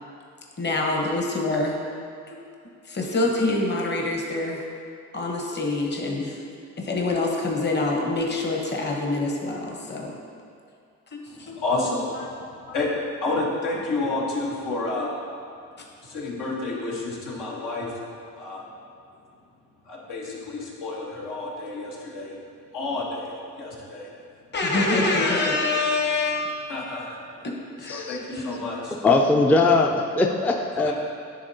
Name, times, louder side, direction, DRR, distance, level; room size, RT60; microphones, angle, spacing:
voice 1, 0.6-1.8 2.9-4.6 5.1-6.4 6.8-10.1 11.5-11.6 24.5-26.5 27.4-28.7, left 2 dB, 35° left, 0 dB, 1.0 m, -25 dB
voice 2, 11.3-15.2 16.0-18.0 18.4-18.6 19.8-22.3 22.7-24.1 24.7-25.4 26.7-27.2 27.8-29.0 30.9-31.0, left 2 dB, 90° left, -4 dB, 1.3 m, -30 dB
voice 3, 27.9-28.2 29.0-30.9, left 3 dB, 5° left, 3 dB, 0.3 m, -20 dB
9.6 x 3.6 x 2.7 m, 2.4 s
cardioid pair, 90°, 30 cm